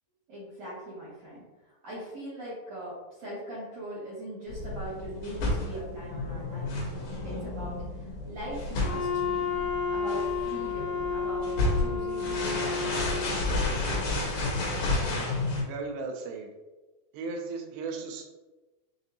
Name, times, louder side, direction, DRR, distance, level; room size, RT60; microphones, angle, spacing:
voice 1, 0.3-1.4 1.8-6.9 7.2-9.4 9.9-11.5 11.8-13.8, right 1 dB, 65° right, -9 dB, 1.6 m, -41 dB
sound 1, 4.5-15.6, left 2 dB, 65° left, 2.5 m, -31 dB
Wind instrument woodwind instrument, 8.8-13.5, left 5 dB, 90° left, 3.1 m, -31 dB
voice 2, 15.6-16.5 17.1-18.2, right 4 dB, 85° right, 2 dB, 2.4 m, -36 dB
6.9 x 2.5 x 2.7 m, 1.2 s
omnidirectional pair, 5.4 m